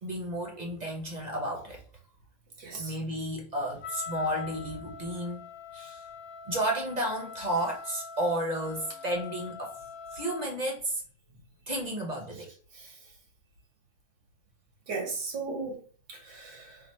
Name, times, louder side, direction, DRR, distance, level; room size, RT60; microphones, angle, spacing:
voice 1, 0.0-1.8 2.8-5.4 5.7-6.0 6.5-9.8 10.1-10.9 11.7-12.5, right 1 dB, 35° right, 0.8 m, -32 dB
voice 2, 2.6-2.9 12.8-12.9 14.9-15.8 16.1-16.8, right 4 dB, 80° right, 2.0 m, -36 dB
Wind instrument woodwind instrument, 3.8-10.6, left 6 dB, 65° left, 0.8 m, -43 dB
4.0 x 2.4 x 4.4 m
omnidirectional pair, 1.8 m